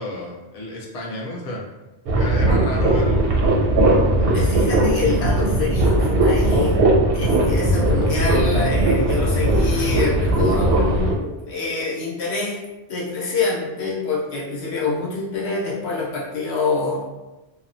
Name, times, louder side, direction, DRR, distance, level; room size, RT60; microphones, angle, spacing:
voice 1, 0.0-1.6 2.2-3.3, left 1 dB, 50° left, -3 dB, 0.4 m, -30 dB
sound 1, 2.1-11.1, right 1 dB, 65° right, 0.7 m, -18 dB
voice 2, 4.2-6.8 7.1-12.6 12.9-17.0, left 3 dB, 70° left, -5 dB, 1.0 m, -25 dB
2.8 x 2.1 x 2.5 m, 1.1 s
omnidirectional pair, 1.2 m